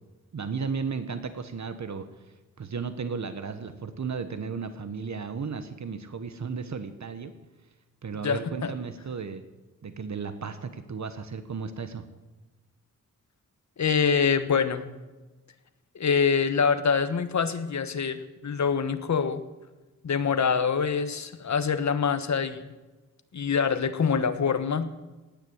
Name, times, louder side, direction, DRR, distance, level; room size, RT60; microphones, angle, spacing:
voice 1, 0.3-2.1 2.6-7.3 8.0-9.4 9.8-12.0, right 5 dB, 60° right, 10 dB, 1.3 m, -34 dB
voice 2, 8.2-8.7 13.8-14.9 15.9-19.4 20.0-22.7 23.3-24.9, left 6 dB, 60° left, 10 dB, 1.3 m, -25 dB
17.5 x 10.5 x 8.0 m, 1.2 s
wide cardioid pair, 130°, 32 cm